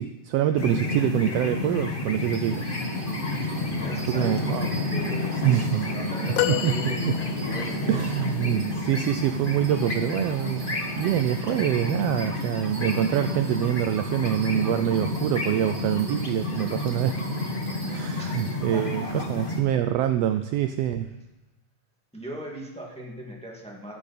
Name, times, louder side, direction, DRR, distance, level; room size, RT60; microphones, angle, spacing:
voice 1, 0.0-2.7 3.4-3.6 4.1-4.7 5.4-5.8 6.5-7.2 7.9-17.2 17.9-21.1, right 11 dB, 85° right, 9 dB, 1.4 m, -25 dB
sound 1, 0.6-19.6, left 2 dB, 65° left, 0.5 m, -30 dB
Bell, 2.1-18.5, right 3 dB, 55° right, 3.3 m, -46 dB
voice 2, 3.8-4.6 4.9-8.0 18.2-19.1 22.1-24.0, right 1 dB, ahead, -2 dB, 1.7 m, -39 dB
sound 2, 6.4-7.8 10.2-10.3 11.7-11.8, left 15 dB, 85° left, 1.9 m, -29 dB
13.0 x 10.5 x 4.3 m, 1.0 s
omnidirectional pair, 3.4 m